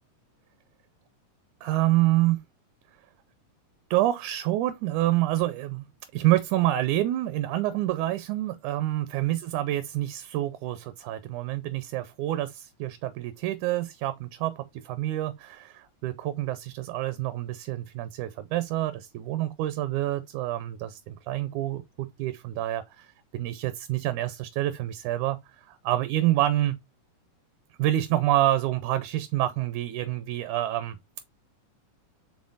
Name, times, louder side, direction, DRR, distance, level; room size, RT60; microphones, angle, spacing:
voice 1, 1.6-2.4 3.9-5.8 6.1-23.1 23.3-26.8 27.8-31.0, right 14 dB, 80° right, 1.8 m, -27 dB
6.2 x 3.5 x 2.3 m
omnidirectional pair, 3.7 m